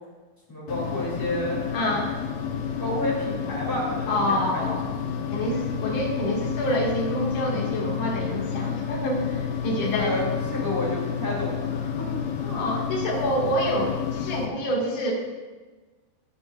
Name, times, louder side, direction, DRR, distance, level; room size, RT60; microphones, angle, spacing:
voice 1, 0.5-1.6 2.8-4.7 5.4-5.7 9.9-12.6, left 1 dB, 10° left, -5 dB, 1.2 m, -30 dB
sound 1, 0.7-14.5, left 7 dB, 80° left, 2.8 m, -30 dB
voice 2, 1.7-2.1 4.1-4.9 5.3-10.2 12.5-15.1, equal, 55° left, -3 dB, 2.8 m, -27 dB
19.0 x 7.7 x 2.4 m, 1.3 s
omnidirectional pair, 5.1 m